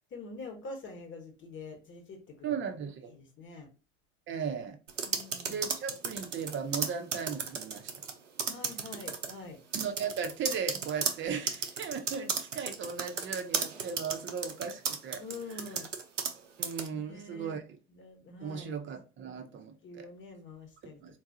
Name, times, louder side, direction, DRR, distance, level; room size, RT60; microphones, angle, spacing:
voice 1, 0.1-2.5 3.1-3.7 5.0-5.6 8.4-9.6 15.2-15.9 16.9-17.6 17.9-18.8 19.8-21.2, left 3 dB, 30° left, 1.2 m, -46 dB
voice 2, 2.4-3.2 4.3-4.8 5.4-7.9 9.7-15.2 16.6-17.6 18.4-20.1 21.0-21.2, right 6 dB, 35° right, 0.7 m, -37 dB
sound 1, 4.9-8.1 8.4-9.3 9.7-16.4 16.6-16.9, right 6 dB, 90° right, 0.6 m, -34 dB
3.9 x 2.3 x 2.7 m
figure-of-eight pair, 75°, 36 cm